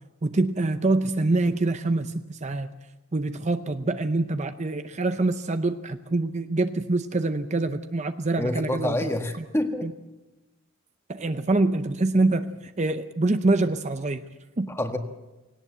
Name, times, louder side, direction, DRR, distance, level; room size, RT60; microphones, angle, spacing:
voice 1, 0.2-2.7 3.1-9.1 9.8-9.9 11.1-14.2 14.6-14.7, right 2 dB, 30° right, 9 dB, 0.6 m, -25 dB
voice 2, 8.4-9.9 14.7-15.0, left 1 dB, 10° left, 5 dB, 1.5 m, -27 dB
18.5 x 18.0 x 8.0 m, 1.1 s
head